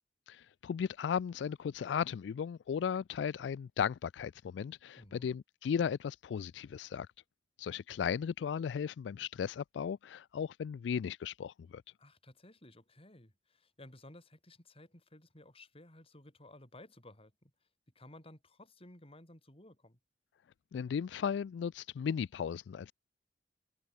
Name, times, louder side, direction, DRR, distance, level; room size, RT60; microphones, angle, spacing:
voice 1, 0.3-7.1 7.6-11.8 20.7-22.9, left 7 dB, 80° left, 0.3 m, -36 dB
voice 2, 5.0-5.3 12.0-17.5 17.9-20.0, left 1 dB, 35° left, 6.4 m, -56 dB
head